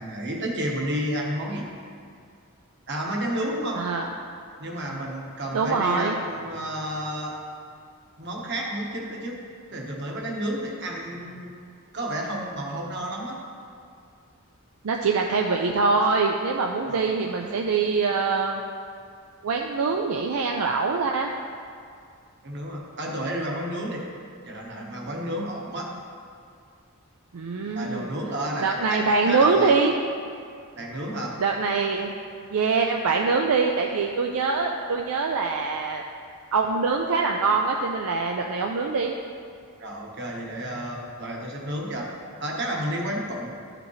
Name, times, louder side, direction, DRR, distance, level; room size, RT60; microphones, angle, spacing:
voice 1, 0.0-1.7 2.9-3.8 4.6-7.3 8.2-9.4 9.7-11.5 11.9-13.4 16.9-17.6 22.4-24.0 24.5-25.9 27.7-29.7 30.8-31.4 39.8-42.1 42.4-43.5, right 1 dB, 50° right, -1 dB, 1.2 m, -31 dB
voice 2, 3.7-4.1 5.5-6.2 14.8-18.6 19.4-21.3 27.3-28.1 28.6-29.9 31.4-32.1 32.5-36.0 36.5-39.1, right 4 dB, 75° right, 2 dB, 0.5 m, -24 dB
12.5 x 5.0 x 3.2 m, 2.3 s
head